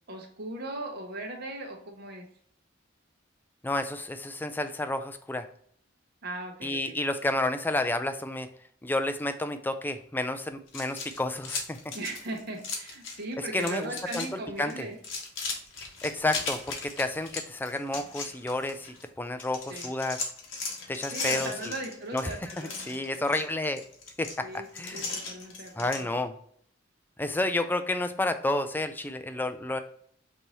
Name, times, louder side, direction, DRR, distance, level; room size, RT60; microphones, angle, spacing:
voice 1, 0.1-2.2 6.2-7.0 11.9-15.0 19.7-19.9 21.1-22.9 24.4-24.7 24.9-25.7, right 2 dB, 55° right, 1 dB, 1.0 m, -38 dB
voice 2, 3.6-5.5 6.6-8.5 8.8-11.8 13.4-14.9 16.0-20.3 20.9-21.7 22.1-23.8 24.2-25.1 25.7-26.4 27.2-29.8, left 2 dB, 10° left, 9 dB, 0.3 m, -31 dB
sound 1, 10.7-13.2 13.5-14.3 14.6-19.0 19.4-26.0, left 4 dB, 85° left, 1.0 m, -37 dB
5.3 x 2.7 x 3.0 m, 0.64 s
head